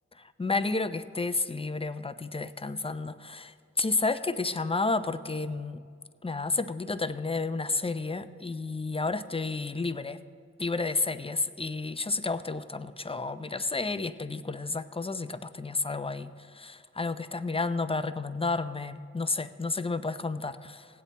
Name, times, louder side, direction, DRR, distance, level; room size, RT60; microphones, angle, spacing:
voice 1, 0.4-5.8 6.2-10.2 10.6-20.9, left 3 dB, 20° left, 12 dB, 0.6 m, -31 dB
17.5 x 8.2 x 4.2 m, 2.2 s
cardioid pair, 40°, 29 cm